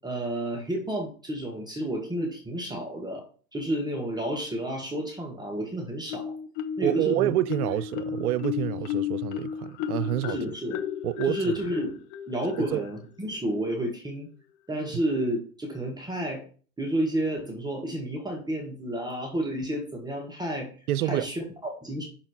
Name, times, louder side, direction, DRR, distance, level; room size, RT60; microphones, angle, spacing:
voice 1, 0.0-3.2 3.5-6.3 6.8-7.3 10.3-10.8 11.3-14.3 14.7-16.4 16.8-20.7 21.0-22.0, right 1 dB, 10° right, 1.3 m, -31 dB
Marimba xylophone, 6.1-7.0 7.5-13.0, left 9 dB, 45° left, 0.8 m, -33 dB
voice 2, 6.8-10.4 11.0-11.5 12.6-12.8 20.9-21.3, right 13 dB, 70° right, 0.6 m, -27 dB
6.0 x 4.3 x 4.2 m
hypercardioid pair, 105°, 46 cm